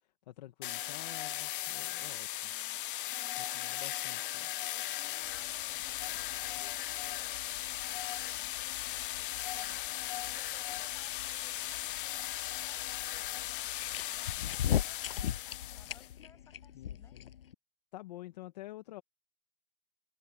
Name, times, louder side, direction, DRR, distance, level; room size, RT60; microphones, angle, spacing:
voice 1, 0.3-2.5 3.4-4.5 16.7-17.3 17.9-19.0, left 15 dB, 45° left, 1.6 m, -49 dB
sound 1, 0.6-16.1, left 14 dB, 65° left, 0.4 m, -37 dB
voice 2, 2.3-2.8 3.1-9.9 10.1-17.2, left 6 dB, 10° left, 7.5 m, -62 dB
sound 2, 5.2-17.5, left 10 dB, 80° left, 6.4 m, -41 dB
supercardioid pair, 175°, 29 cm